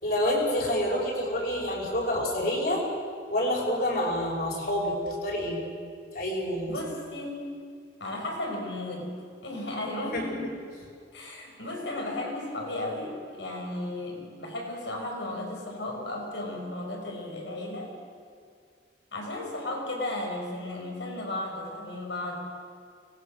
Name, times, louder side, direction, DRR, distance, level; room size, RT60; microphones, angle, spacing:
voice 1, 0.0-2.8 3.3-5.6 6.1-6.8 10.1-10.2, left 1 dB, 55° left, -2 dB, 5.9 m, -27 dB
voice 2, 6.7-7.6 8.0-9.1 9.4-10.6 11.1-17.9 19.1-22.4, left 1 dB, 80° left, 0 dB, 5.3 m, -34 dB
24.5 x 20.0 x 6.5 m, 2.2 s
head